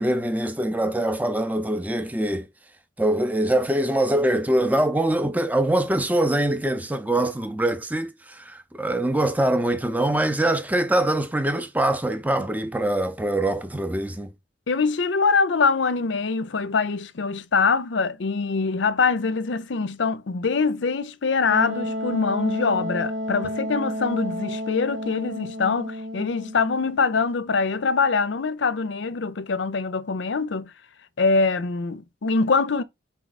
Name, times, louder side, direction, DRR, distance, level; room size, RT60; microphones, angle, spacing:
voice 1, 0.0-2.5 3.0-14.3, right 1 dB, 10° right, 0.6 m, -23 dB
voice 2, 14.7-30.7 31.2-32.8, left 4 dB, 70° left, 0.6 m, -24 dB
Wind instrument woodwind instrument, 21.5-27.0, equal, 75° right, 0.9 m, -31 dB
6.0 x 3.9 x 4.1 m
head